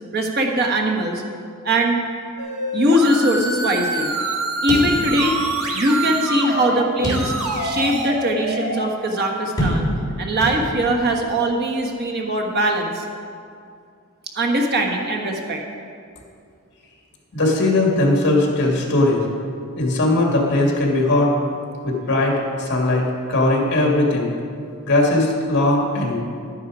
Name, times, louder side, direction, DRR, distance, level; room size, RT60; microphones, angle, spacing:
voice 1, 0.1-1.2 1.6-2.0 2.7-4.1 4.6-5.4 5.7-7.3 7.6-9.9 10.2-13.0 14.3-15.6, right 1 dB, 45° right, 1 dB, 1.4 m, -21 dB
sound 1, 2.4-6.8 7.1-8.8, right 2 dB, 80° right, 1.6 m, -26 dB
sound 2, 4.7-5.5 5.9-6.0 7.0-7.7 8.2-8.3 9.6-10.1 10.4-11.1, equal, 20° left, 3.5 m, -25 dB
voice 2, 17.3-19.2 19.8-21.3 21.8-24.3 24.8-26.2, left 2 dB, 55° left, -1 dB, 2.1 m, -19 dB
11.5 x 10.0 x 4.9 m, 2.3 s
head